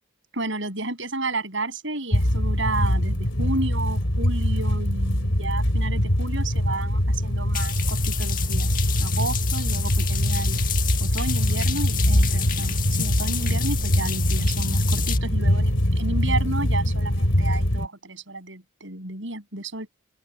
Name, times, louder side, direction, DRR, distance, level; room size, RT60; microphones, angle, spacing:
voice 1, 0.3-10.6 11.0-19.9, right 2 dB, 65° right, 7.3 m, -32 dB
sound 1, 2.1-17.9, equal, 75° left, 4.7 m, -23 dB
sound 2, 7.5-15.2, left 10 dB, 45° left, 1.5 m, -31 dB
open air
head